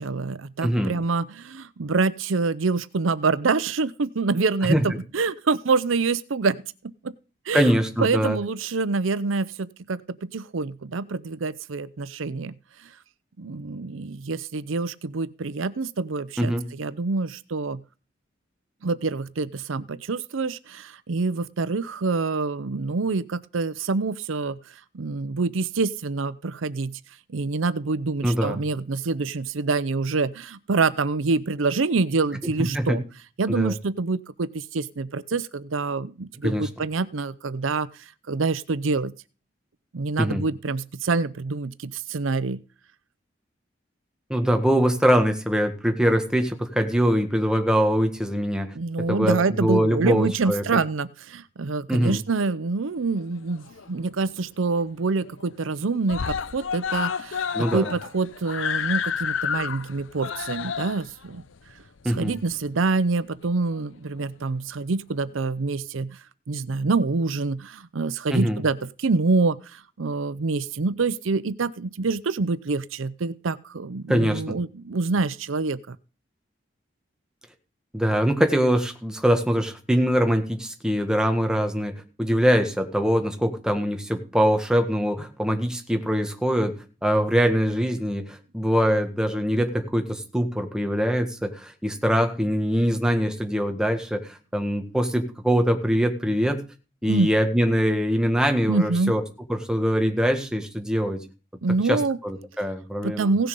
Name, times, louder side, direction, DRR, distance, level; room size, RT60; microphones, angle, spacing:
voice 1, 0.0-7.1 7.5-12.5 13.4-16.5 16.8-17.8 18.8-24.6 24.9-27.0 27.3-33.0 33.4-37.9 38.3-39.1 39.9-42.6 48.7-61.4 62.1-66.2 66.5-76.0 97.0-97.3 98.7-99.2 101.6-102.2 103.0-103.5, right 4 dB, 90° right, 17 dB, 0.6 m, -26 dB
voice 2, 0.6-0.9 4.7-4.8 7.5-8.4 16.4-16.7 28.2-28.6 32.4-33.0 33.5-33.7 36.4-36.7 40.2-40.4 44.3-48.7 49.1-50.6 51.9-52.2 57.5-57.9 62.0-62.3 68.3-68.6 74.1-74.6 77.9-81.9 82.2-86.7 87.0-96.6 97.0-99.2 99.5-101.2 101.9-103.3, equal, 5° right, 5 dB, 1.7 m, -23 dB
Screaming, 53.2-54.1 54.4-54.5 54.9-55.0 55.3-55.7 56.1-62.9 63.7-63.8, left 7 dB, 85° left, 0.6 m, -30 dB
17.0 x 6.9 x 5.4 m, 0.35 s
head